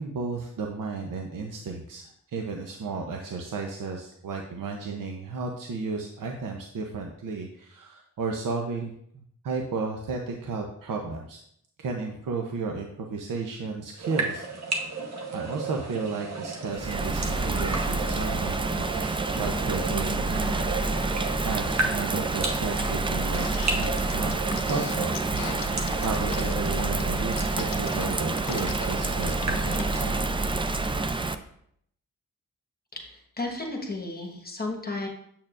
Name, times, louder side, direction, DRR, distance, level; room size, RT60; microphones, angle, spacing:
voice 1, 0.0-8.9 9.4-11.4 11.8-14.4 14.8-20.6 21.4-23.5 23.7-24.3 24.7-25.1 26.0-30.4, right 4 dB, 75° right, 2 dB, 0.7 m, -33 dB
sound 1, 14.0-30.2, right 3 dB, 55° right, 1.2 m, -35 dB
Bird vocalization bird call bird song / Rain, 16.7-31.3, right 3 dB, 15° right, 0.3 m, -28 dB
sound 2, 23.3-30.0, left 7 dB, 85° left, 0.6 m, -38 dB
voice 2, 32.9-35.1, left 2 dB, 30° left, 1 dB, 1.2 m, -33 dB
7.4 x 6.7 x 2.5 m, 0.70 s
cardioid pair, 80°, 32 cm